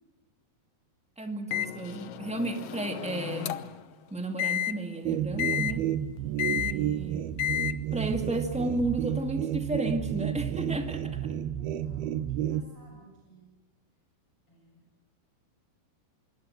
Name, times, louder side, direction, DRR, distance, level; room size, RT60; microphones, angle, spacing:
voice 1, 1.2-3.5 4.1-5.9 6.5-7.3 7.9-11.3, right 2 dB, 5° right, 4 dB, 0.8 m, -33 dB
Microwave oven, 1.5-3.8 4.4-4.7 5.4-5.7 6.4-6.7 7.4-7.7, left 12 dB, 90° left, 1.3 m, -31 dB
sound 1, 5.1-12.6, right 11 dB, 85° right, 2.9 m, -31 dB
voice 2, 11.6-13.5 14.5-14.8, right 1 dB, 35° left, -3 dB, 8.4 m, -57 dB
25.5 x 23.0 x 7.9 m, 1.2 s
omnidirectional pair, 4.3 m